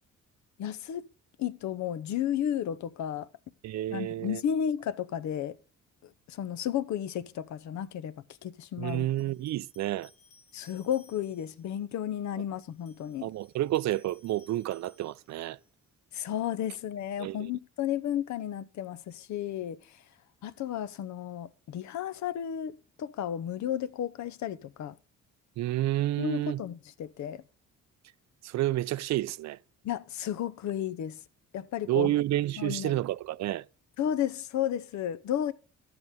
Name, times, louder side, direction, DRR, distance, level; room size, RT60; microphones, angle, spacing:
voice 1, 0.6-1.0 1.4-3.3 3.9-5.6 6.0-9.1 10.5-13.3 16.1-20.0 20.4-25.0 26.2-27.4 29.8-31.2 31.5-32.1 32.6-33.0 34.0-35.5, left 10 dB, 70° left, 0.8 m, -33 dB
voice 2, 3.6-4.4 8.8-10.1 13.2-15.6 17.2-17.4 25.6-26.6 28.4-29.6 31.9-33.6, right 14 dB, 65° right, 0.4 m, -30 dB
sound 1, 8.9-11.7 12.6-15.7, left 4 dB, 85° left, 1.4 m, -62 dB
12.0 x 7.9 x 3.6 m
cardioid pair, 90°, 30 cm